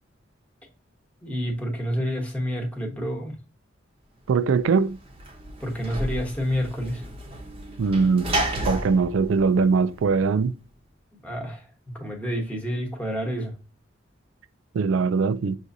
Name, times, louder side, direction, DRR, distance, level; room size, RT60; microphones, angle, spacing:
voice 1, 1.2-3.4 5.6-7.0 11.1-11.7 12.0-13.5, equal, 5° left, 1.0 m, -29 dB
voice 2, 4.3-5.0 7.8-8.3 8.7-10.6 14.7-15.6, right 5 dB, 80° right, 0.3 m, -21 dB
Sliding door / Slam, 4.6-10.4, right 1 dB, 30° right, 0.7 m, -32 dB
6.1 x 2.5 x 2.6 m
head